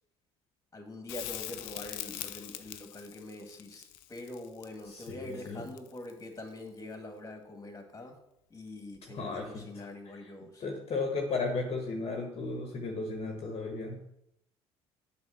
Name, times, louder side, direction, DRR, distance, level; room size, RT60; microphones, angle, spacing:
voice 1, 0.7-8.2 8.5-10.6, left 1 dB, 25° left, 4 dB, 1.9 m, -44 dB
Crackle, 1.1-6.2 9.0-9.1, left 14 dB, 75° left, 0.5 m, -42 dB
voice 2, 4.9-5.6 9.1-9.6 10.6-14.0, left 3 dB, 45° left, 2 dB, 1.3 m, -34 dB
7.8 x 3.6 x 5.8 m, 0.80 s
hypercardioid pair, 65°, 14 cm